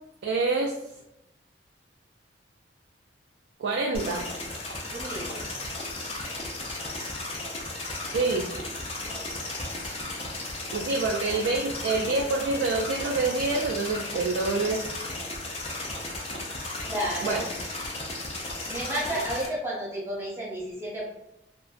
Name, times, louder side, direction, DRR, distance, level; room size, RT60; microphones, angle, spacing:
voice 1, 0.2-0.8 3.6-4.3 8.1-8.5 10.7-14.8 17.2-17.4, right 3 dB, 80° right, 1 dB, 0.3 m, -26 dB
sound 1, 3.9-19.5, left 2 dB, 30° left, 0.4 m, -35 dB
voice 2, 4.9-5.5 16.8-17.5 17.9-18.1 18.7-21.0, right 1 dB, 15° right, -6 dB, 0.8 m, -32 dB
2.5 x 2.1 x 2.3 m, 0.84 s
head